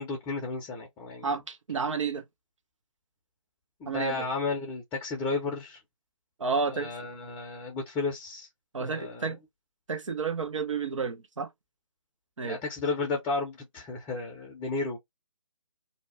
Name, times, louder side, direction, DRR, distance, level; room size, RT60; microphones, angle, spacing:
voice 1, 0.0-1.3 3.8-5.8 6.7-8.5 8.8-9.3 12.4-15.0, left 3 dB, 10° left, 0.6 m, -33 dB
voice 2, 1.2-2.2 3.9-4.3 6.4-6.9 8.7-9.4 9.9-11.5 12.4-12.6, right 5 dB, 65° right, 0.8 m, -31 dB
2.8 x 2.2 x 4.1 m
figure-of-eight pair, 145°, 17 cm